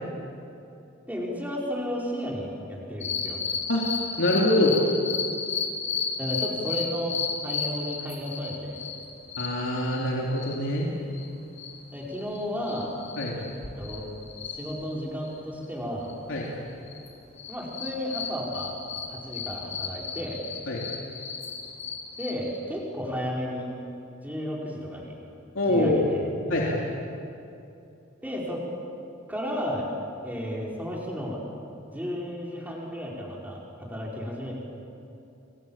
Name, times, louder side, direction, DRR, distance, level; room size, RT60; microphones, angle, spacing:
voice 1, 1.1-3.4 6.2-7.2 7.4-8.8 11.9-12.9 13.4-13.5 13.8-14.1 14.5-16.1 17.5-18.7 19.1-20.4 22.2-23.7 24.2-25.1 25.7-26.2 28.2-28.6 29.3-29.9 30.2-31.4 31.9-34.6, equal, 10° right, -3 dB, 5.3 m, -33 dB
sound 1, 3.0-10.8 11.1-11.2 11.5-15.7 16.0-17.1 17.4-22.6, left 6 dB, 40° left, 5.0 m, -34 dB
voice 2, 4.2-4.7 9.4-10.9 13.2-13.3 16.3-16.5 20.7-20.9 25.5-26.0 26.5-26.8, left 1 dB, 90° left, -3 dB, 3.4 m, -24 dB
29.5 x 25.0 x 7.5 m, 2.7 s
head